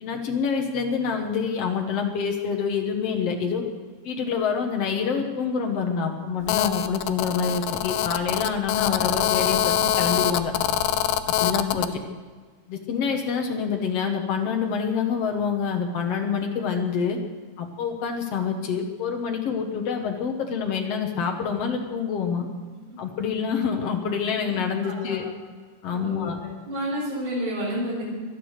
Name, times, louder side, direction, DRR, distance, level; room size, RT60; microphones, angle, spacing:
voice 1, 0.0-3.6 4.0-10.5 11.3-11.9 12.7-17.2 17.6-22.4 23.0-25.2 25.8-26.4, left 6 dB, 65° left, 3 dB, 1.5 m, -26 dB
Telephone, 6.5-11.9, left 10 dB, 90° left, 2.8 m, -24 dB
voice 2, 24.8-25.3 25.9-26.3 26.6-28.0, equal, 80° right, -6 dB, 6.6 m, -30 dB
24.0 x 8.5 x 6.5 m, 1.5 s
omnidirectional pair, 4.6 m